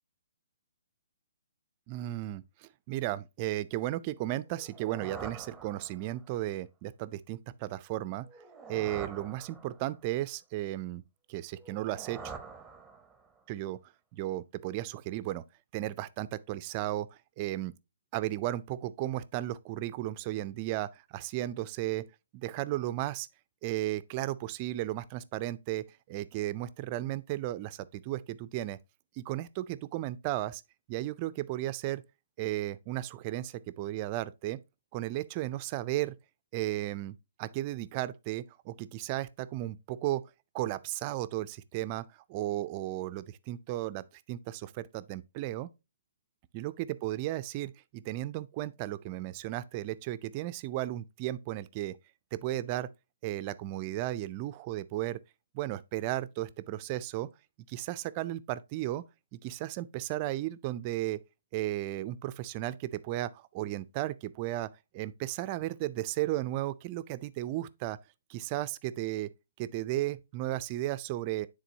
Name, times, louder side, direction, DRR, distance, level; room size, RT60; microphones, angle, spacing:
voice 1, 1.9-8.3 8.7-11.0 11.3-12.3 13.5-13.8 14.1-15.4 15.7-17.1 17.4-17.7 18.1-22.1 22.3-23.3 23.6-28.8 29.2-30.6 30.9-32.0 32.4-34.6 34.9-36.2 36.5-40.2 40.5-45.7 46.5-52.0 52.3-52.9 53.2-55.2 55.5-57.3 57.7-59.0 59.3-61.2 61.5-68.0 68.3-69.3 69.6-71.5, right 15 dB, 35° right, 0.4 m, -34 dB
sound 1, 4.5-6.3 8.2-10.1 11.6-13.4, right 5 dB, 10° right, 0.7 m, -46 dB
9.3 x 3.8 x 2.7 m
hypercardioid pair, 140°, 0 cm